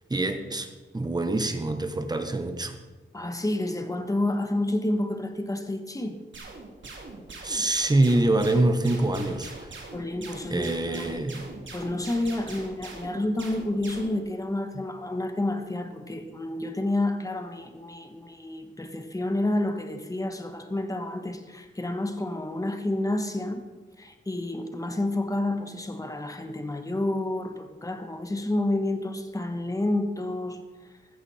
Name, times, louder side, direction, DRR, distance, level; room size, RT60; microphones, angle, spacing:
voice 1, 0.1-2.7 7.4-9.7 10.5-11.5, right 2 dB, 20° right, 7 dB, 1.1 m, -25 dB
voice 2, 3.1-6.2 9.9-11.3 11.7-23.6 24.0-30.6, left 1 dB, 15° left, 7 dB, 1.3 m, -29 dB
sound 1, 6.3-14.2, right 3 dB, 65° right, 2.7 m, -42 dB
14.5 x 14.0 x 4.3 m, 1.2 s
wide cardioid pair, 160°, 20 cm